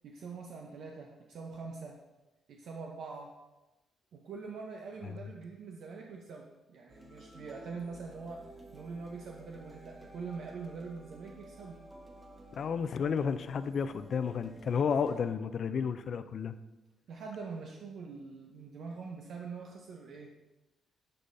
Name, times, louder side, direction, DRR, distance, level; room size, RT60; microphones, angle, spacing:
voice 1, 0.0-2.0 2.5-3.3 4.1-8.4 8.7-11.8 17.1-20.3, right 4 dB, 65° right, 1 dB, 0.7 m, -44 dB
sound 1, 6.9-15.2, right 1 dB, 15° right, 1.1 m, -53 dB
voice 2, 12.5-16.5, left 6 dB, 55° left, 12 dB, 0.3 m, -32 dB
10.0 x 5.4 x 2.6 m, 1.1 s
cardioid pair, 90°, 0 cm